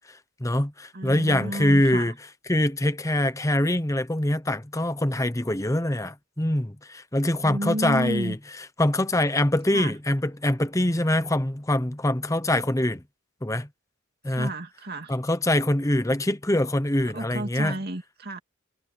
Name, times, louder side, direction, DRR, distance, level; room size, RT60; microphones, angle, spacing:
voice 1, 0.1-2.1 2.5-8.4 8.8-13.0 13.4-13.7 14.2-14.5 15.1-17.7, left 1 dB, 15° left, 0.9 m, -24 dB
voice 2, 0.9-2.1 7.3-8.4 9.7-10.0 14.3-15.2 17.0-18.4, right 1 dB, 45° right, 2.6 m, -32 dB
head